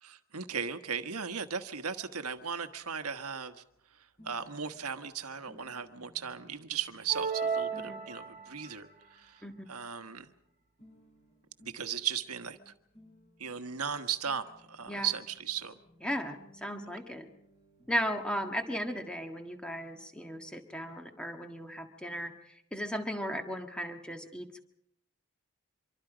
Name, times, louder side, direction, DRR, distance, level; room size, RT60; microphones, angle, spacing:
voice 1, 0.0-3.5 4.2-9.4 9.7-10.3 11.6-12.7 13.4-15.7, right 7 dB, 85° right, 9 dB, 1.5 m, -37 dB
sound 1, 1.9-19.0, equal, 30° left, 7.8 m, -62 dB
sound 2, 7.1-8.8, right 5 dB, 30° right, 1.4 m, -34 dB
voice 2, 7.7-8.1 9.4-9.7 14.9-15.1 16.0-17.3 17.9-24.6, equal, 5° left, 5 dB, 1.7 m, -36 dB
25.5 x 24.0 x 5.1 m, 0.74 s
head